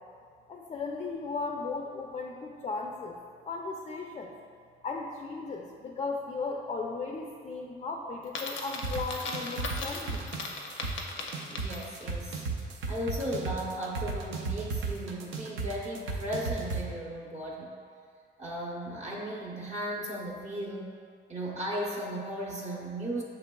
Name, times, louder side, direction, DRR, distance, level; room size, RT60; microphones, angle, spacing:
voice 1, 0.5-3.1 3.4-4.3 4.8-10.3, left 4 dB, 30° left, 1 dB, 0.4 m, -36 dB
Coin (dropping), 8.2-12.2, left 3 dB, 75° left, 0.6 m, -38 dB
sound 1, 8.8-16.8, right 4 dB, 90° right, 0.5 m, -34 dB
voice 2, 11.5-12.4 12.9-17.7 18.4-20.9 21.3-23.2, right 1 dB, 35° right, -3 dB, 0.7 m, -36 dB
6.9 x 2.9 x 2.2 m, 2.2 s
cardioid pair, 90°, 20 cm